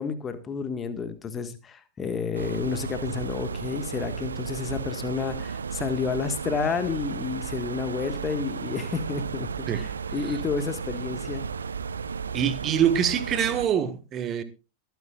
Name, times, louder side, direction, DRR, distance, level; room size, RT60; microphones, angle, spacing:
voice 1, 0.0-9.5 9.7-11.4, left 5 dB, 20° left, 1.6 m, -30 dB
sound 1, 2.3-13.7, right 6 dB, 70° right, 0.6 m, -34 dB
voice 2, 12.3-14.4, right 9 dB, 30° right, 1.3 m, -24 dB
22.5 x 9.4 x 2.4 m
figure-of-eight pair, 90°, 0 cm